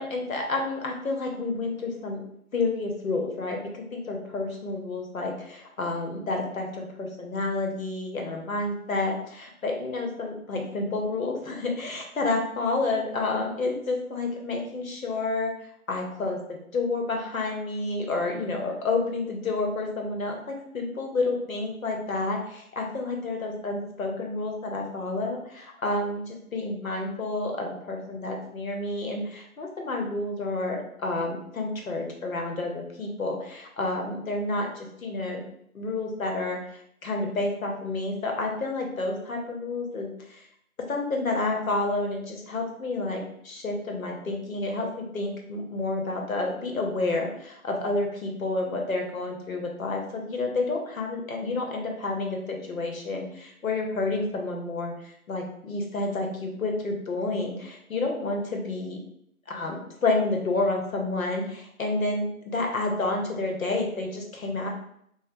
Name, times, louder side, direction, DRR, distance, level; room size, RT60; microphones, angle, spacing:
voice 1, 0.0-2.2 2.5-15.5 15.9-16.4 16.7-35.4 35.7-40.4 40.9-59.0 59.5-59.8 60.0-62.3 62.5-64.7, left 2 dB, 65° left, 1 dB, 0.8 m, -30 dB
3.1 x 2.1 x 2.5 m, 0.71 s
figure-of-eight pair, 160°, 44 cm